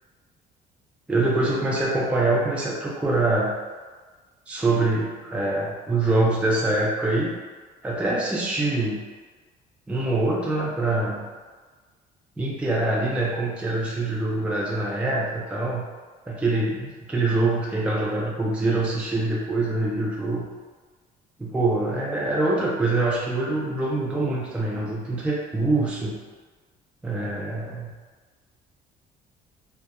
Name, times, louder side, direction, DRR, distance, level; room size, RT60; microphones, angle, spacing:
voice 1, 1.1-3.5 4.5-7.4 7.8-9.0 9.9-11.3 12.4-15.8 16.3-20.4 21.4-26.2 27.0-27.9, right 2 dB, 5° right, -5 dB, 0.4 m, -24 dB
2.2 x 2.1 x 2.8 m, 1.4 s
cardioid pair, 110°, 17 cm